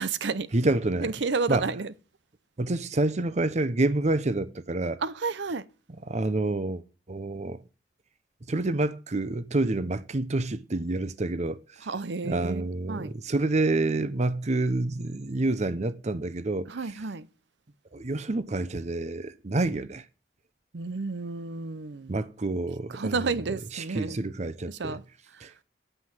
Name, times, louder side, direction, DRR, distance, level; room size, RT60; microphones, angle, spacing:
voice 1, 0.0-0.5 1.0-1.9 5.0-5.6 11.9-13.1 16.7-17.3 20.7-22.1 22.9-24.2 24.7-25.0, right 4 dB, 80° right, 0.7 m, -31 dB
voice 2, 0.5-1.1 1.5-1.7 2.6-5.0 6.0-6.8 7.1-7.6 8.5-11.9 12.2-16.9 17.9-20.0 22.1-23.4 23.7-25.0 25.4-25.5, right 2 dB, 40° right, 0.7 m, -28 dB
9.0 x 7.9 x 7.3 m
head